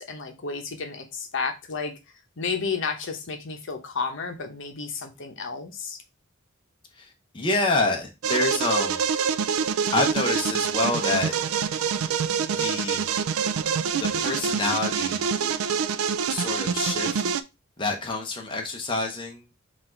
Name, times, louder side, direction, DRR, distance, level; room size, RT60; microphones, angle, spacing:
voice 1, 0.0-1.9 2.4-6.0, left 5 dB, 65° left, 0.8 m, -32 dB
voice 2, 7.0-9.0 9.9-11.3 12.5-13.1 14.0-15.2 16.3-17.2 17.8-19.4, left 3 dB, 25° left, 0.7 m, -27 dB
sound 1, 8.2-17.4, right 6 dB, 80° right, 0.4 m, -26 dB
4.1 x 2.5 x 4.4 m
head